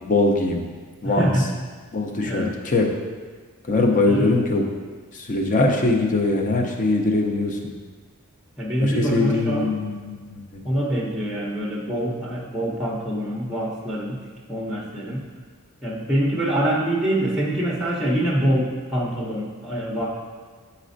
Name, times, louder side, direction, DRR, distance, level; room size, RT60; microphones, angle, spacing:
voice 1, 0.1-0.6 1.0-1.3 1.9-2.9 3.6-4.6 5.1-7.6 8.8-10.6, left 2 dB, 35° left, 2 dB, 0.6 m, -22 dB
voice 2, 1.0-1.4 2.2-2.5 4.1-4.3 8.6-9.7 10.6-14.2 14.5-15.2 15.8-20.1, right 1 dB, ahead, -3 dB, 0.7 m, -24 dB
8.8 x 4.2 x 2.6 m, 1.5 s
head